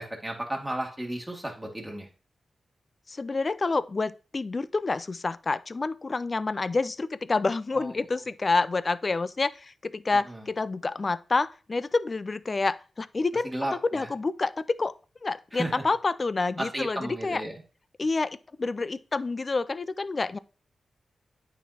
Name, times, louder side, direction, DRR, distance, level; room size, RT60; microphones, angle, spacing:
voice 1, 0.0-2.1 7.7-7.9 10.3-10.4 13.4-14.1 15.5-15.7 16.6-17.6, right 1 dB, 10° right, 2.1 m, -33 dB
voice 2, 3.1-14.9 15.2-17.4 18.0-20.4, left 3 dB, 45° left, 0.3 m, -28 dB
9.0 x 4.7 x 2.8 m
cardioid pair, 55°, 0 cm